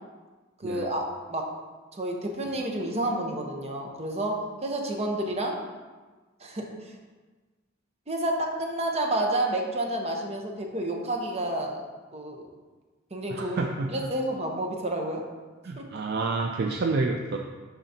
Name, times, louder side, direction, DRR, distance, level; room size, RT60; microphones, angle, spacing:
voice 1, 0.6-1.0 1.3-1.4 1.9-5.6 6.4-6.9 8.1-11.8 12.1-12.4 13.1-15.2 15.8-15.9, right 1 dB, 30° right, 1 dB, 0.9 m, -30 dB
voice 2, 13.3-14.1 15.6-17.4, right 3 dB, 55° right, 2 dB, 0.4 m, -29 dB
11.5 x 3.9 x 2.8 m, 1.3 s
head